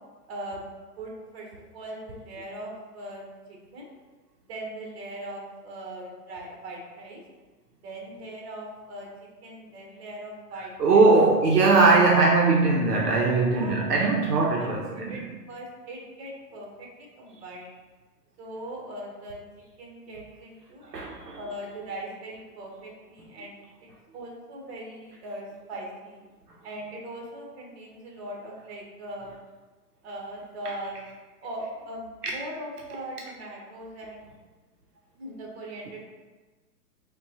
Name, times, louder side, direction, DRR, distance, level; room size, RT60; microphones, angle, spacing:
voice 1, 0.3-0.6 1.0-1.5 1.7-3.9 4.5-7.2 7.8-9.1 9.4-11.0 11.8-12.2 13.5-14.1 14.6-17.7 18.4-19.4 19.8-20.8 21.4-23.9 24.1-26.2 26.6-29.3 30.0-30.9 31.4-34.3 35.2-36.0, right 1 dB, 40° right, -1 dB, 1.0 m, -39 dB
voice 2, 10.8-15.1 20.9-21.4, right 3 dB, 70° right, -2 dB, 0.7 m, -20 dB
5.1 x 2.3 x 2.8 m, 1.3 s
figure-of-eight pair, 125°, 49 cm